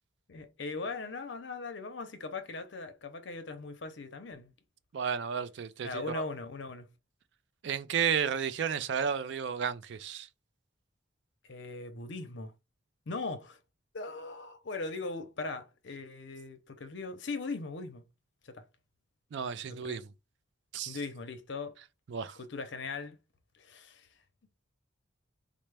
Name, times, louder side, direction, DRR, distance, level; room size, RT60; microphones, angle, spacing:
voice 1, 0.3-4.5 5.8-6.9 11.4-12.5 13.1-13.6 13.9-18.0 18.4-18.6 19.7-20.0 20.9-21.7 22.4-23.2 23.5-24.1, left 3 dB, 65° left, 0.6 m, -39 dB
voice 2, 4.9-6.2 7.6-10.3 19.3-20.0 20.7-21.0 22.1-22.4, right 7 dB, 60° right, 0.4 m, -32 dB
4.2 x 2.0 x 3.3 m
head